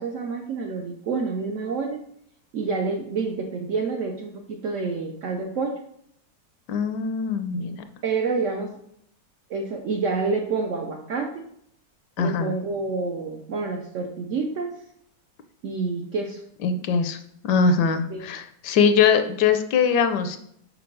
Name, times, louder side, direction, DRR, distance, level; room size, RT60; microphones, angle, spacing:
voice 1, 0.0-2.0 2.5-5.8 8.0-8.7 9.5-11.4 12.2-14.7 15.6-16.4 18.1-18.2, right 4 dB, 75° right, 3 dB, 0.7 m, -28 dB
voice 2, 6.7-7.8 12.2-12.5 16.6-17.2 17.4-20.4, left 6 dB, 75° left, 9 dB, 1.1 m, -22 dB
4.7 x 4.5 x 5.2 m, 0.71 s
omnidirectional pair, 2.0 m